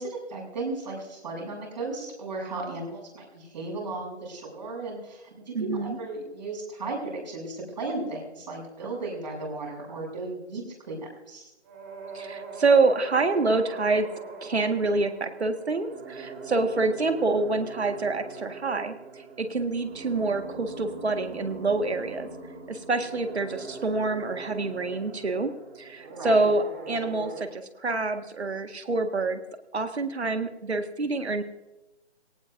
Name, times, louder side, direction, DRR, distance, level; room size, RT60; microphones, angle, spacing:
voice 1, 0.0-11.0 11.3-11.5 26.1-26.4, right 3 dB, 40° right, -1 dB, 7.1 m, -35 dB
voice 2, 5.5-6.0 12.1-14.1 14.4-19.0 19.4-22.3 22.7-25.5 25.8-29.4 29.7-31.4, right 3 dB, 65° right, 7 dB, 1.8 m, -26 dB
sound 1, 11.6-27.4, right 3 dB, 10° right, 1.1 m, -41 dB
21.0 x 18.0 x 2.6 m, 1.0 s
figure-of-eight pair, 160°, 34 cm